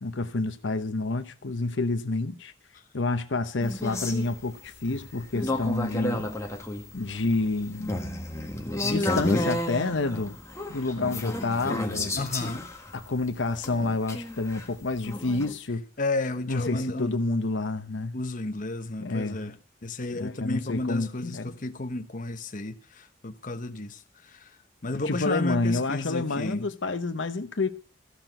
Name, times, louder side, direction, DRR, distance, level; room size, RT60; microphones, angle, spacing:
voice 1, 0.0-2.5 2.9-6.2 6.9-8.1 8.8-10.3 10.7-12.1 12.9-15.8 16.5-18.1 19.0-19.5 20.1-21.5 25.1-27.7, left 3 dB, 80° left, 0.9 m, -29 dB
sound 1, 3.6-15.6, left 1 dB, 15° left, 1.5 m, -32 dB
voice 2, 12.2-12.7 16.0-17.2 18.1-19.6 19.8-24.5 24.8-26.7, left 2 dB, 45° left, 1.0 m, -32 dB
14.5 x 6.0 x 9.0 m
head